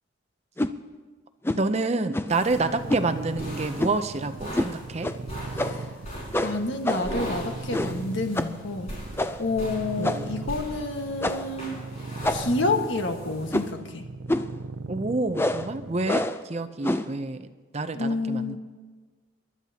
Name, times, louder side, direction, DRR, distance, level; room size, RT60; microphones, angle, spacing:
sound 1, 0.6-0.8 1.4-1.7 2.1-2.4 2.9-3.1 3.8-4.1 4.5-4.7 5.0-5.2 5.6-5.9 6.3-7.2 7.7-8.0 8.4-8.6 9.2-9.5 10.0-10.4 11.2-11.6 12.2-12.7 13.5-13.8 14.3-14.6 15.3-15.7 16.1-16.4 16.8-17.1, left 1 dB, 10° left, 0.4 m, -27 dB
voice 1, 1.5-5.1 10.0-10.3 14.9-17.5 17.7-18.6, right 3 dB, 35° right, 10 dB, 0.6 m, -28 dB
sound 2, 2.3-13.7, equal, 35° left, 5.9 m, -40 dB
sound 3, 2.5-16.3, right 3 dB, 75° right, 0.5 m, -39 dB
voice 2, 5.5-5.8 6.4-8.9 9.4-11.8 12.3-14.0 17.9-18.6, left 2 dB, 75° left, 4 dB, 1.5 m, -29 dB
28.0 x 12.0 x 2.9 m, 1.4 s
head